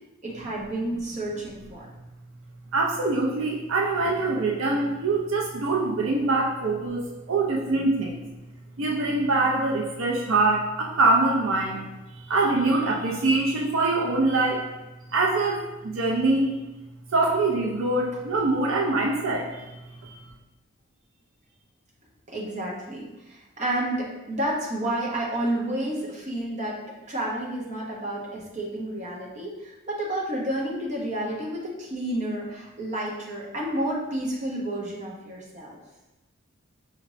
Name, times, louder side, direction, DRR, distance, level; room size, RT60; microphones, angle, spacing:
voice 1, 0.2-1.9 22.3-26.8 27.1-35.8, right 1 dB, 35° right, -3 dB, 0.8 m, -30 dB
voice 2, 2.7-8.3 8.8-11.9 12.1-14.7 15.1-16.6 17.1-19.6 20.0-20.1, right 2 dB, 75° right, -1 dB, 0.5 m, -24 dB
5.1 x 3.0 x 2.6 m, 1.0 s
head